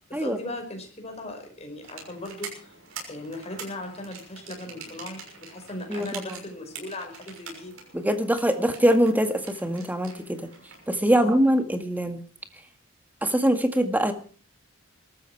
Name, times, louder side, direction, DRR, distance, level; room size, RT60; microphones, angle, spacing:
voice 1, 0.1-2.7 3.1-7.8 11.2-11.3, left 1 dB, 30° left, 4 dB, 5.1 m, -38 dB
sound 1, 1.8-11.0, right 5 dB, 70° right, 6.4 m, -44 dB
voice 2, 5.9-6.2 7.9-10.5 10.9-12.2 13.2-14.1, equal, 10° right, 7 dB, 1.9 m, -23 dB
22.5 x 13.5 x 4.6 m, 0.41 s
head